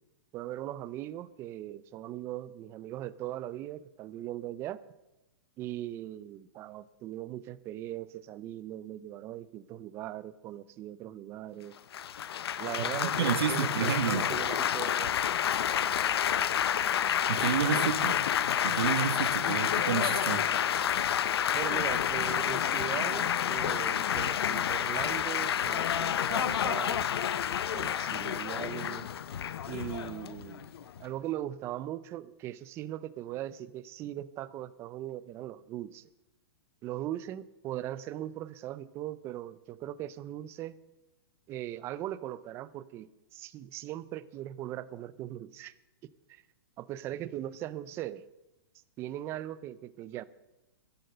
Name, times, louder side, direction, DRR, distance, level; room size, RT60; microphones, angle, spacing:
voice 1, 0.3-4.8 5.6-11.8 12.6-15.3 17.8-17.9 21.5-27.0 27.7-29.1 29.7-30.7 31.0-36.1 36.8-40.8 41.5-45.7 46.0-46.4 46.8-48.2 49.0-50.2, right 13 dB, 20° right, 17 dB, 0.4 m, -39 dB
Laughter / Applause / Chatter, 11.9-31.1, left 9 dB, 75° left, 0.8 m, -29 dB
voice 2, 12.9-14.3 17.3-18.1 18.6-20.5, right 7 dB, 75° right, 8 dB, 1.8 m, -30 dB
13.0 x 11.0 x 6.7 m, 0.98 s
hypercardioid pair, 160°, 13 cm